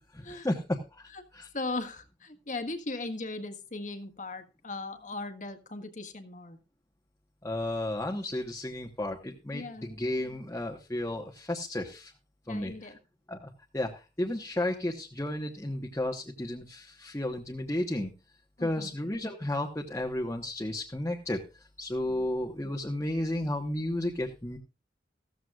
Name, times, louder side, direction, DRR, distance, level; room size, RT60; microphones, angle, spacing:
voice 1, 0.1-1.5 7.4-12.1 12.5-12.9 13.3-18.1 18.6-21.4 21.8-24.6, left 1 dB, 15° left, 0 dB, 1.2 m, -33 dB
voice 2, 1.5-6.6 9.5-10.0 12.5-13.0 18.6-18.9 22.1-22.3, left 2 dB, 45° left, 7 dB, 1.6 m, -38 dB
15.0 x 14.0 x 2.4 m, 0.29 s
head